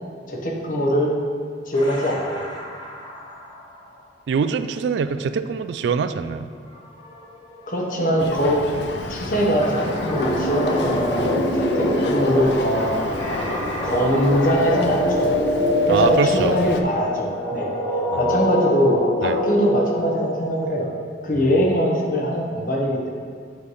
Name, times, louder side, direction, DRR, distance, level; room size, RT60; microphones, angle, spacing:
voice 1, 0.3-1.2 1.7-2.5 7.7-8.6 9.1-11.2 11.5-13.4 13.8-15.3 15.9-17.7 18.2-20.9 21.2-23.1, equal, 50° left, -2 dB, 1.0 m, -22 dB
sound 1, 1.7-3.7 6.7-6.8 7.0-20.6, left 1 dB, 25° left, 1.3 m, -25 dB
voice 2, 4.3-6.5 15.9-16.6 18.1-18.4 19.2-19.4 21.3-21.5, right 5 dB, 75° right, 11 dB, 0.3 m, -24 dB
Boat Water vehicle, 8.2-16.8, left 3 dB, 75° left, 0.5 m, -32 dB
8.3 x 3.2 x 5.4 m, 2.1 s
head